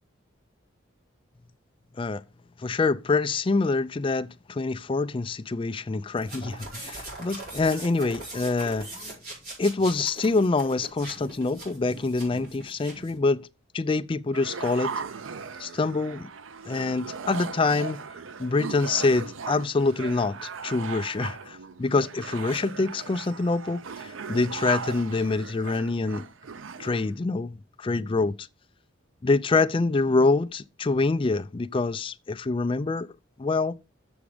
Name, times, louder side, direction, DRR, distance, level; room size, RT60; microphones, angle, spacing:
voice 1, 2.6-8.9 9.6-13.5 13.7-14.9 15.6-16.3 16.7-18.0 18.4-26.3 26.8-28.5 29.2-33.1 33.4-33.8, left 3 dB, 25° left, 0.4 m, -26 dB
sound 1, 6.2-13.2, right 2 dB, 50° right, 4.5 m, -41 dB
sound 2, 14.3-27.1, right 5 dB, 85° right, 0.5 m, -38 dB
7.1 x 6.2 x 4.9 m
head